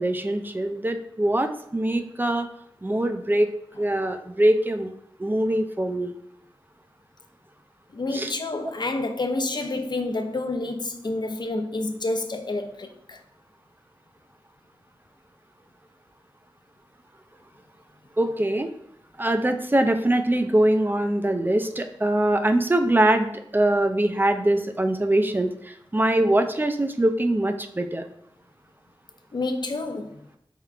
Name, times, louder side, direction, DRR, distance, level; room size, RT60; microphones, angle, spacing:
voice 1, 0.0-2.5 2.8-3.5 3.8-4.9 5.2-6.1 8.1-8.3 18.2-18.7 19.2-28.1, right 1 dB, 20° right, 0.4 m, -23 dB
voice 2, 7.9-13.2 29.3-30.2, left 2 dB, 50° left, 0.5 m, -29 dB
4.4 x 3.6 x 2.4 m
wide cardioid pair, 55°, 9 cm